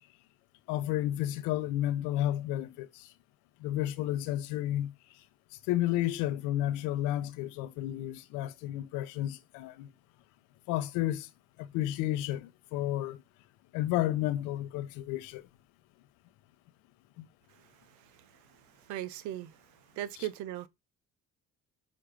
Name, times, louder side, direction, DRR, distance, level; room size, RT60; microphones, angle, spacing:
voice 1, 0.7-3.1 3.6-4.9 5.7-9.9 10.7-11.3 11.6-13.2 13.7-15.4 17.2-17.3 20.2-20.3, left 13 dB, 80° left, 0.8 m, -32 dB
voice 2, 17.9-19.6 20.0-20.7, right 13 dB, 75° right, 1.0 m, -39 dB
7.6 x 4.2 x 5.1 m
supercardioid pair, 65°, 30 cm